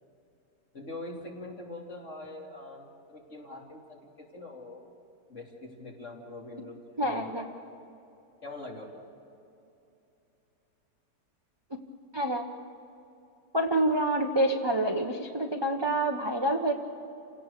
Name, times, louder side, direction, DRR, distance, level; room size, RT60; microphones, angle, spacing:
voice 1, 0.7-4.9 5.3-7.5 8.4-9.1, left 2 dB, 45° left, -1 dB, 3.3 m, -43 dB
voice 2, 7.0-7.4 12.1-12.6 13.5-16.7, right 1 dB, 20° right, 3 dB, 0.9 m, -27 dB
29.0 x 17.5 x 6.8 m, 2.8 s
omnidirectional pair, 1.8 m